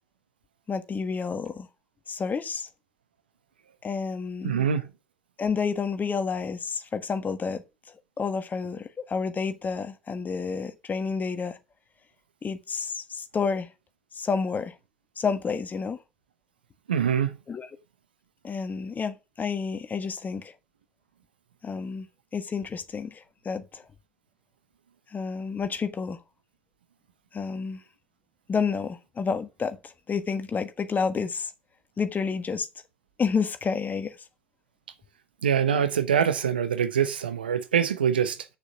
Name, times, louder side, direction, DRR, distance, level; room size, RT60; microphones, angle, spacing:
voice 1, 0.7-1.7 2.1-2.7 3.8-4.7 5.4-7.6 8.2-11.6 12.4-13.7 14.1-14.7 15.2-16.0 17.5-17.7 18.4-20.5 21.6-22.1 22.3-23.8 25.1-26.2 27.3-27.8 28.5-29.8 30.1-31.5 32.0-32.7 33.2-34.1, left 5 dB, 35° left, 1.5 m, -29 dB
voice 2, 4.4-4.9 16.9-17.4 35.4-38.5, right 8 dB, 80° right, 0.9 m, -24 dB
8.1 x 6.8 x 6.0 m
figure-of-eight pair, 55°, 5 cm